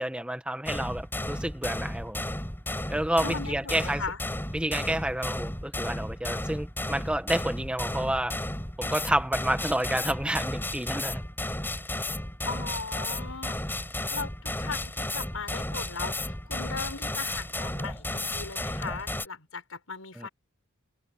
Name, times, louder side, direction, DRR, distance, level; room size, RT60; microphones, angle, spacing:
voice 1, 0.0-2.2 2.9-4.0 4.5-8.3 8.8-11.2 20.2-20.3, right 1 dB, 5° right, 1.1 m, -29 dB
sound 1, 0.7-19.3, left 1 dB, 10° left, 4.3 m, -33 dB
voice 2, 3.2-4.2 5.2-5.3 12.4-20.3, left 4 dB, 90° left, 5.2 m, -38 dB
head